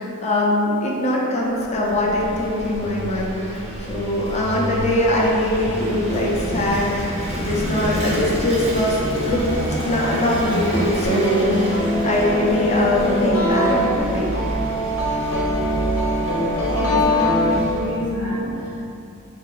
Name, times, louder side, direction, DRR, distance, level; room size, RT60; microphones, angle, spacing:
voice 1, 0.0-3.6 3.9-9.4 9.8-14.3, left 1 dB, 30° left, -4 dB, 0.5 m, -22 dB
Vehicle / Engine, 1.5-18.1, right 1 dB, 30° right, 0.5 m, -28 dB
sound 1, 11.0-18.1, equal, 70° left, 0.7 m, -22 dB
voice 2, 16.8-18.8, equal, 85° right, -8 dB, 0.8 m, -28 dB
2.8 x 2.6 x 4.0 m, 2.7 s
head